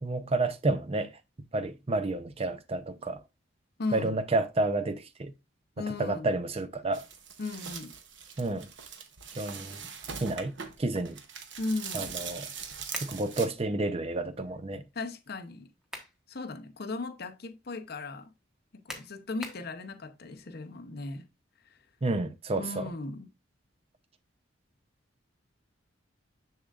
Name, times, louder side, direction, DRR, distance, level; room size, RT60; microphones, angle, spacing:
voice 1, 0.0-1.2 1.5-3.2 3.9-5.3 5.8-7.0 8.4-8.7 9.4-9.9 10.2-11.2 11.9-12.5 13.0-14.8 22.0-22.8, right 2 dB, 30° right, 0.6 m, -30 dB
voice 2, 3.8-4.2 5.8-6.3 7.4-8.0 11.6-12.1 14.9-15.7 16.3-18.3 18.7-21.3 22.6-23.3, left 3 dB, 55° left, 0.7 m, -37 dB
sound 1, 6.9-13.5, right 6 dB, 70° right, 0.9 m, -41 dB
sound 2, 12.9-13.2 15.6-16.2 16.7-16.8 18.9-19.7, left 1 dB, 5° right, 1.2 m, -42 dB
6.7 x 6.5 x 2.4 m
head